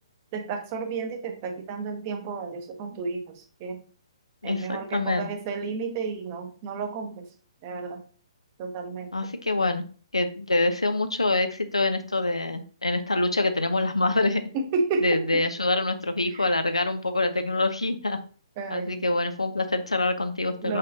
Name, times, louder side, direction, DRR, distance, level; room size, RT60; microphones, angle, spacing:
voice 1, 0.3-3.8 4.4-7.3 7.6-8.0 8.6-9.1 14.5-15.4 16.3-16.5 18.6-19.0 20.6-20.8, right 4 dB, 35° right, 5 dB, 0.9 m, -32 dB
voice 2, 4.4-5.3 9.1-9.8 10.1-14.4 15.0-18.2 18.7-20.8, left 2 dB, 85° left, 9 dB, 0.6 m, -25 dB
5.1 x 4.0 x 2.6 m, 0.40 s
figure-of-eight pair, 125°, 3 cm